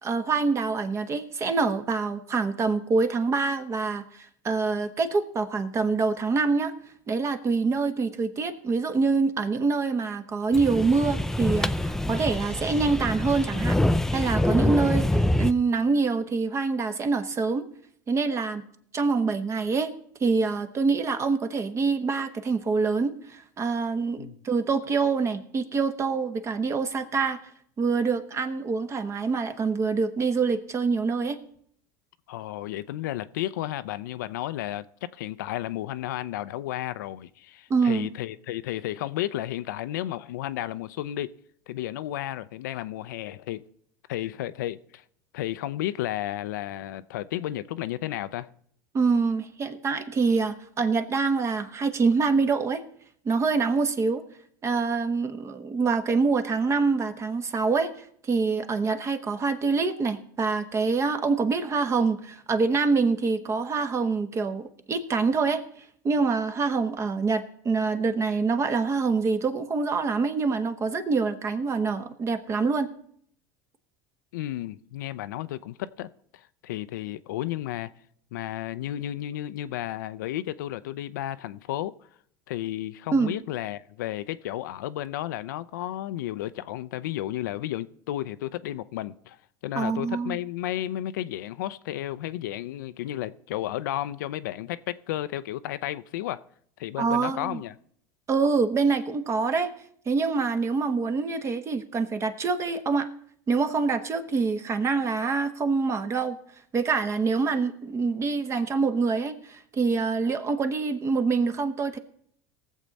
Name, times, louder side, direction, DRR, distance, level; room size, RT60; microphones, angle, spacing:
voice 1, 0.0-6.7 7.1-13.8 14.1-17.6 18.1-18.6 18.9-19.9 20.2-27.4 27.8-31.4 37.7-38.1 48.9-52.8 53.2-54.2 54.6-57.9 58.2-65.6 66.0-72.9 83.1-83.3 89.7-90.4 97.0-97.6 98.3-99.7 100.1-103.1 103.5-106.4 106.7-112.0, right 4 dB, 30° right, 1.1 m, -25 dB
sound 1, 10.5-15.5, left 1 dB, 5° left, 0.4 m, -25 dB
voice 2, 32.3-34.8 35.1-41.3 41.7-43.6 44.1-45.0 45.3-48.5 74.3-77.9 78.3-81.9 82.5-89.4 89.6-96.4 96.8-97.7, left 13 dB, 85° left, 0.5 m, -33 dB
19.0 x 7.4 x 4.1 m
supercardioid pair, 110°, 10 cm